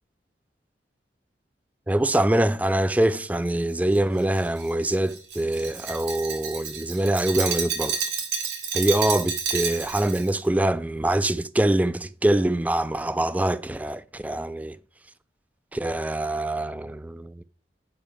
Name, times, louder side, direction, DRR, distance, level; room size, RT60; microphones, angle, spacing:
voice 1, 1.9-8.0 8.7-14.8 15.7-17.4, right 1 dB, 10° right, 0.3 m, -24 dB
Glass, 3.9-10.3, right 6 dB, 90° right, 2.8 m, -30 dB
8.9 x 6.1 x 5.5 m
head